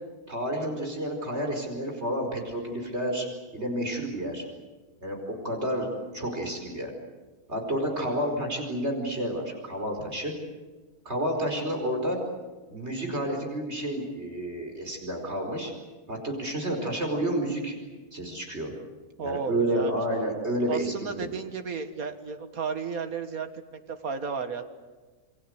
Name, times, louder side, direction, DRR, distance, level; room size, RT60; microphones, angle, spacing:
voice 1, 0.3-3.3 3.5-4.4 5.0-5.2 5.4-5.9 6.1-6.9 7.5-10.3 11.0-12.2 12.7-15.7 16.1-17.7 18.1-18.7 19.2-21.3, right 1 dB, 45° right, 2 dB, 5.2 m, -30 dB
voice 2, 19.2-20.0 20.7-24.7, right 5 dB, 65° right, 8 dB, 2.1 m, -34 dB
28.5 x 22.5 x 8.1 m, 1.3 s
omnidirectional pair, 1.6 m